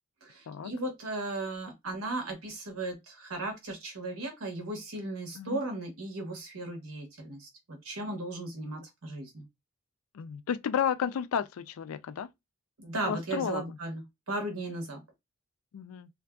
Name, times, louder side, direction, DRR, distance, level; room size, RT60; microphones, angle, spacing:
voice 1, 0.2-9.4 12.8-15.0, right 2 dB, 90° right, 1.0 m, -36 dB
voice 2, 10.1-12.3 13.1-13.8 14.6-14.8 15.7-16.1, left 8 dB, 85° left, 0.4 m, -32 dB
2.6 x 2.5 x 2.2 m
head